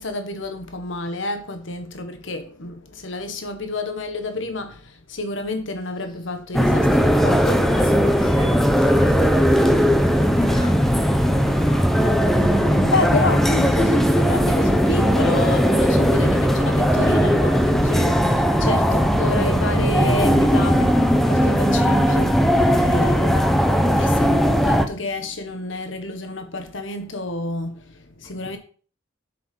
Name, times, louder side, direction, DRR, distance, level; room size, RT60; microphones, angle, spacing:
voice 1, 0.0-7.8 12.7-28.6, left 2 dB, 65° left, 1.4 m, -29 dB
sound 1, 6.5-24.9, equal, ahead, 0.8 m, -18 dB
voice 2, 7.1-12.5 18.5-18.8 22.6-23.0 28.4-28.6, left 1 dB, 20° left, 1.2 m, -36 dB
7.6 x 7.0 x 5.4 m
head